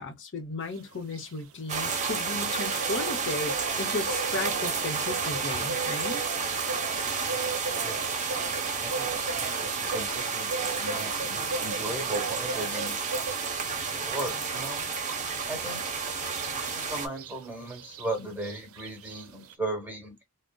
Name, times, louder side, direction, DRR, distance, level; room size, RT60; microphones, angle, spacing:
voice 1, 0.0-6.2, left 3 dB, 55° left, 0.8 m, -35 dB
sound 1, 0.7-19.5, right 4 dB, 65° right, 0.4 m, -39 dB
sound 2, 1.7-17.1, right 5 dB, 35° right, 0.7 m, -31 dB
voice 2, 7.8-8.2 8.8-13.0 14.0-14.8 15.5-15.8 16.5-20.2, right 1 dB, 10° right, 1.0 m, -37 dB
3.7 x 2.1 x 2.2 m
head